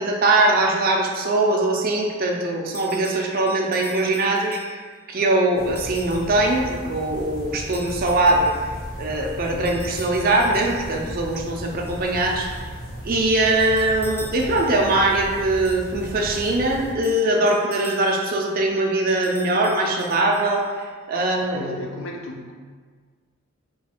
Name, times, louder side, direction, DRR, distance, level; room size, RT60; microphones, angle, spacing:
voice 1, 0.0-4.8 5.1-8.5 9.0-12.5 13.0-21.8, right 2 dB, 45° right, 0 dB, 0.4 m, -21 dB
sound 1, 2.7-5.0 5.8-6.3 7.7-8.7 9.6-11.0 11.9-12.7 13.5-14.9 15.6-18.4 19.1-20.8, equal, 10° left, 0.6 m, -44 dB
sound 2, 5.5-16.9, equal, 90° left, 1.2 m, -36 dB
voice 2, 21.2-22.5, left 2 dB, 65° left, 1 dB, 0.5 m, -36 dB
3.1 x 2.3 x 4.3 m, 1.5 s
head